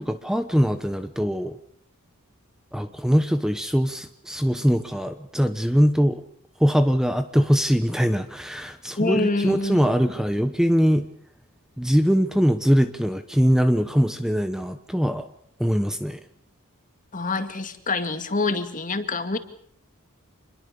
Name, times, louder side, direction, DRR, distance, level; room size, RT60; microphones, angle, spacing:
voice 1, 0.0-1.6 2.7-6.2 6.6-11.1 11.8-15.3 15.6-16.2, equal, 5° right, 9 dB, 1.0 m, -22 dB
voice 2, 9.0-9.9 17.1-19.4, left 3 dB, 35° left, 8 dB, 2.3 m, -26 dB
27.5 x 21.5 x 7.0 m, 0.67 s
head